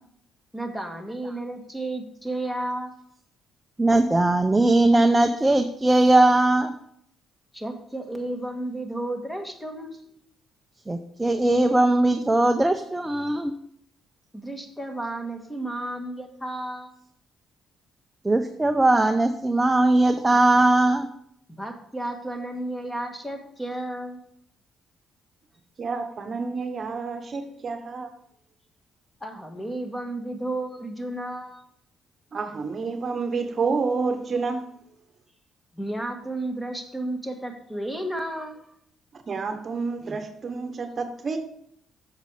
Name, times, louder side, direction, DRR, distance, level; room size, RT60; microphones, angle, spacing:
voice 1, 0.5-3.0 7.5-10.2 14.3-17.0 21.6-24.2 29.2-31.6 35.7-38.6, right 1 dB, 5° left, 4 dB, 1.7 m, -32 dB
voice 2, 3.8-6.7 10.9-13.5 18.2-21.1, right 2 dB, 15° right, 6 dB, 0.6 m, -20 dB
voice 3, 25.8-28.1 32.3-34.7 39.1-41.4, right 4 dB, 45° right, 7 dB, 1.0 m, -29 dB
8.0 x 6.8 x 5.0 m, 0.68 s
cardioid pair, 90°, 0 cm